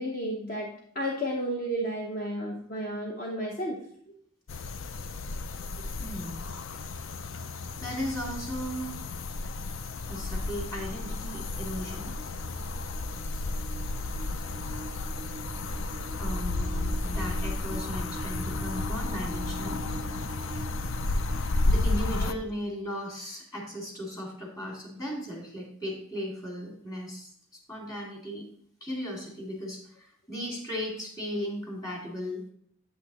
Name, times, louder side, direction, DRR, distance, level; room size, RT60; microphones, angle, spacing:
voice 1, 0.0-3.8 5.8-5.9 22.1-22.3, equal, 40° left, -1 dB, 1.0 m, -32 dB
sound 1, 4.5-22.3, left 2 dB, 65° left, 0.5 m, -33 dB
voice 2, 6.0-6.5 7.8-9.1 10.1-12.1 16.2-19.8 21.6-27.3 27.7-28.5 28.8-32.4, equal, 20° left, -2 dB, 2.3 m, -36 dB
sound 2, 9.9-21.7, right 1 dB, 30° right, 0.5 m, -40 dB
8.5 x 8.4 x 3.0 m, 0.64 s
head